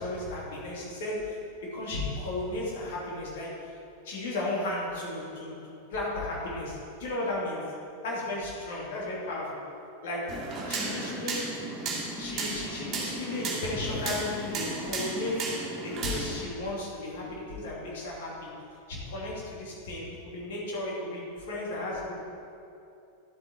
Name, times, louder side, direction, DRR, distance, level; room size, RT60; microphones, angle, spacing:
voice 1, 0.0-3.7 4.0-5.5 5.9-7.7 8.0-9.6 10.0-11.6 12.1-15.5 15.8-18.5 18.9-22.2, left 2 dB, 55° left, -4 dB, 2.5 m, -34 dB
sound 1, 10.3-16.4, right 3 dB, 30° right, 2.1 m, -34 dB
11.5 x 7.9 x 4.4 m, 2.6 s
figure-of-eight pair, 90°, 0 cm